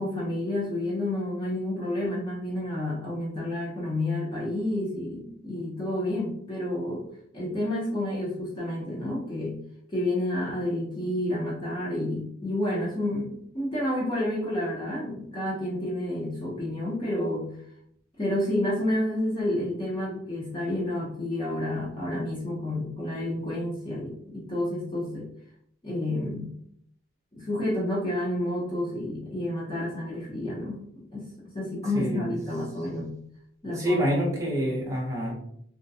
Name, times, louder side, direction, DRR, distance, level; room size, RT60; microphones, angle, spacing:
voice 1, 0.0-7.1 7.3-9.6 9.9-17.5 18.2-25.3 25.8-26.5 27.3-30.8 31.1-31.3 31.5-33.2 33.6-34.0, left 1 dB, 25° left, -7 dB, 0.6 m, -30 dB
voice 2, 31.9-32.3 33.8-35.3, equal, 15° right, -1 dB, 0.6 m, -27 dB
2.3 x 2.1 x 2.6 m, 0.69 s
head